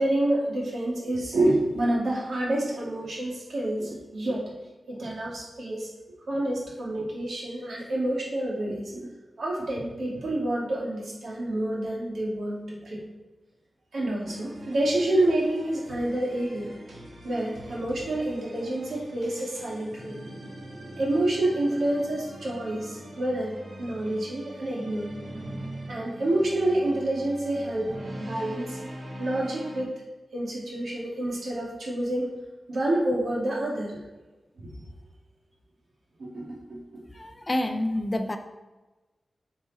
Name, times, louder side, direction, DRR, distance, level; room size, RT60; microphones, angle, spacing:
voice 1, 0.0-4.5 4.9-5.9 6.3-9.1 9.4-13.0 13.9-16.7 17.2-20.2 21.0-25.1 25.9-28.8 29.2-29.9 30.3-32.3 32.7-34.0 36.2-36.8, right 1 dB, 80° right, -4 dB, 2.3 m, -28 dB
sound 1, 14.2-29.8, right 1 dB, 65° right, 1.6 m, -42 dB
voice 2, 37.1-38.4, left 1 dB, 25° left, 6 dB, 0.6 m, -28 dB
8.7 x 5.0 x 4.1 m, 1.2 s
wide cardioid pair, 125°, 0 cm